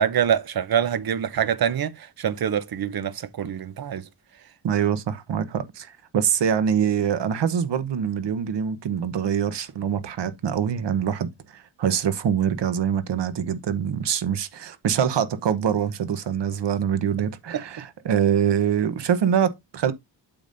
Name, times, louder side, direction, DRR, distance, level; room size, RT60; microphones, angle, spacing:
voice 1, 0.0-4.0 17.5-17.6, right 9 dB, 55° right, 0.7 m, -25 dB
voice 2, 4.6-19.9, right 8 dB, 70° right, 1.1 m, -24 dB
8.7 x 7.2 x 2.6 m
wide cardioid pair, 125°, 44 cm